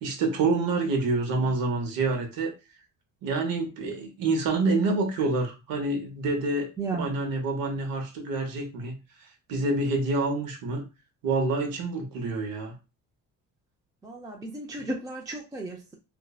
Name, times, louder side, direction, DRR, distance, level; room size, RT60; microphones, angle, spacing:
voice 1, 0.0-2.5 3.2-6.7 7.0-9.0 9.5-10.8 11.2-12.7 14.7-14.8, right 3 dB, 80° right, 3 dB, 0.8 m, -27 dB
voice 2, 6.8-7.1 14.0-16.0, right 3 dB, 10° right, -1 dB, 0.3 m, -34 dB
2.6 x 2.1 x 2.3 m, 0.29 s
cardioid pair, 100°, 34 cm